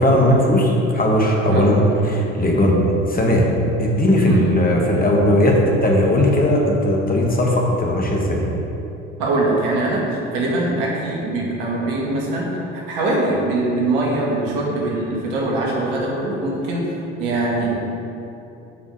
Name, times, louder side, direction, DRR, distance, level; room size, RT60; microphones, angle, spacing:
voice 1, 0.0-2.8 3.1-3.5 3.8-8.4, left 1 dB, 25° left, -1 dB, 1.7 m, -17 dB
voice 2, 9.2-12.6 12.9-16.9 17.2-17.8, right 2 dB, 65° right, -4 dB, 2.2 m, -22 dB
8.3 x 5.3 x 6.4 m, 2.9 s
figure-of-eight pair, 60°, 37 cm